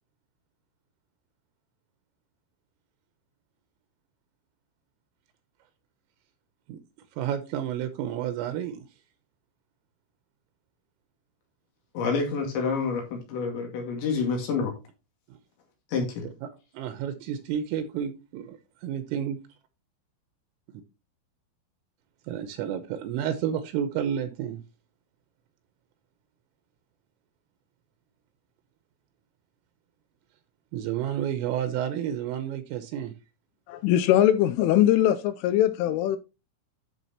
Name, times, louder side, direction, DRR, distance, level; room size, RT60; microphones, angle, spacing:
voice 1, 7.2-8.9 15.3-15.4 16.4-19.4 22.3-24.6 30.7-33.1, right 9 dB, 85° right, 3.3 m, -31 dB
voice 2, 11.9-14.7 15.9-16.3, left 5 dB, 65° left, 4.1 m, -28 dB
voice 3, 33.7-36.2, left 12 dB, 85° left, 2.9 m, -21 dB
12.5 x 6.0 x 2.9 m
omnidirectional pair, 6.0 m